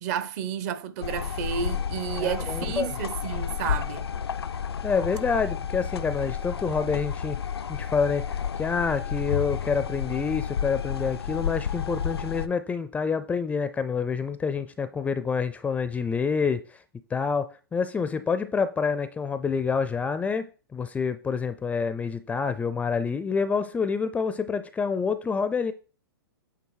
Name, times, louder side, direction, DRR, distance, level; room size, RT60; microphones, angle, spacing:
voice 1, 0.0-4.1, right 8 dB, 45° right, 0.7 m, -31 dB
sound 1, 1.0-12.5, left 8 dB, 85° left, 0.5 m, -31 dB
voice 2, 2.2-2.9 4.8-7.4 7.7-16.6 17.1-25.7, left 5 dB, 10° left, 0.4 m, -27 dB
8.5 x 3.5 x 4.7 m
hypercardioid pair, 120°, 13 cm